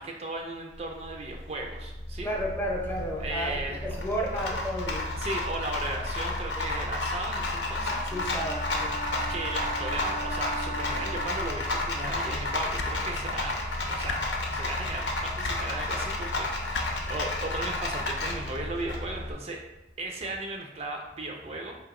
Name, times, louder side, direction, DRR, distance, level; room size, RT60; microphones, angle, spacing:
voice 1, 0.0-2.3 3.2-4.0 5.2-8.3 9.3-13.6 13.9-19.6 20.0-21.8, right 2 dB, 35° right, 2 dB, 0.4 m, -36 dB
Rattle, 0.7-19.3, left 2 dB, 90° left, 0.7 m, -32 dB
voice 2, 2.2-3.6 3.8-5.1 8.1-9.0, equal, 15° left, -1 dB, 0.7 m, -32 dB
sound 1, 8.1-12.0, right 4 dB, 90° right, 0.6 m, -37 dB
sound 2, 12.7-12.9 14.0-14.2 15.4-15.6 16.7-16.8 18.1-18.2, left 5 dB, 65° left, 0.4 m, -34 dB
4.3 x 2.9 x 3.6 m, 1.0 s
head